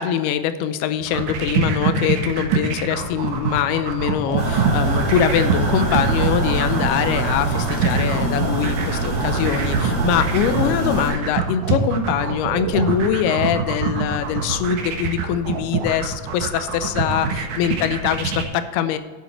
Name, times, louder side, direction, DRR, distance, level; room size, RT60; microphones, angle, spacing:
voice 1, 0.0-19.0, left 9 dB, 80° left, 11 dB, 2.5 m, -23 dB
sound 1, 1.0-18.4, right 6 dB, 65° right, 2.3 m, -24 dB
sound 2, 4.4-11.1, right 2 dB, 25° right, 3.6 m, -24 dB
10.5 x 7.5 x 4.4 m, 1.4 s
omnidirectional pair, 4.7 m